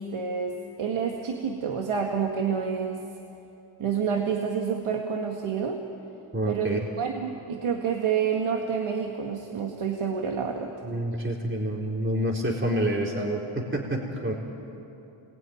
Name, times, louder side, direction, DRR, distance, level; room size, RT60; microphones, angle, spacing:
voice 1, 0.0-3.0 3.8-5.8 6.5-10.7, right 6 dB, 75° right, 2 dB, 2.2 m, -28 dB
voice 2, 6.3-6.8 10.8-14.3, right 1 dB, 25° right, -1 dB, 4.1 m, -28 dB
28.0 x 21.5 x 9.6 m, 2.8 s
cardioid pair, 65°, 50 cm